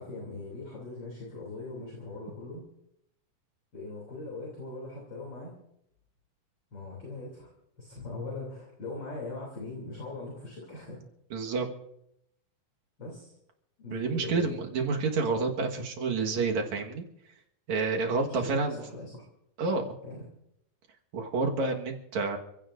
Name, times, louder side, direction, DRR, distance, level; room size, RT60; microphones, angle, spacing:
voice 1, 0.0-2.6 3.7-5.6 6.7-7.5 7.8-11.0 13.0-13.3 13.8-14.5 18.3-19.3 20.0-20.2, left 2 dB, 35° left, -2 dB, 3.4 m, -40 dB
voice 2, 11.3-11.7 13.9-17.0 17.7-18.8 19.6-19.9 21.1-22.4, right 4 dB, 65° right, 2 dB, 2.7 m, -29 dB
29.5 x 16.0 x 2.6 m, 0.79 s
omnidirectional pair, 3.7 m